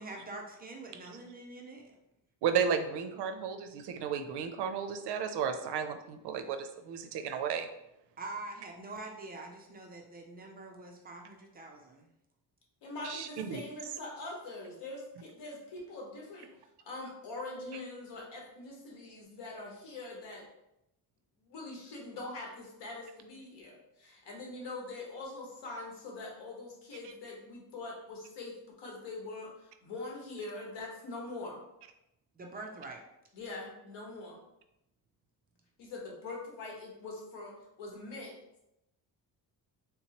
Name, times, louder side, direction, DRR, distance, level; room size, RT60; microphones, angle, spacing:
voice 1, 0.0-1.9 8.2-12.1 32.3-33.0, right 2 dB, 25° right, 1 dB, 0.4 m, -45 dB
voice 2, 2.4-7.7 13.0-13.6, right 7 dB, 75° right, 7 dB, 0.5 m, -33 dB
voice 3, 12.8-16.5 16.8-20.4 21.4-31.6 33.3-34.4 35.8-38.3, left 2 dB, 90° left, -1 dB, 1.3 m, -43 dB
3.5 x 3.0 x 2.9 m, 0.84 s
cardioid pair, 160°, 41 cm